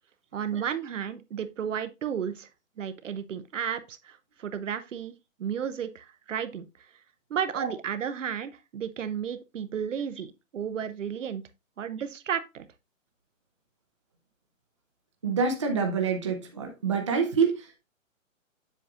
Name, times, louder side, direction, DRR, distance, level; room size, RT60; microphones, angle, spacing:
voice 1, 0.3-2.5 2.8-5.1 5.4-6.7 7.3-11.4 11.8-12.7, right 8 dB, 65° right, 0.7 m, -33 dB
voice 2, 15.2-17.8, right 5 dB, 25° right, 0.6 m, -27 dB
7.7 x 6.5 x 2.4 m
hypercardioid pair, 170°, 40 cm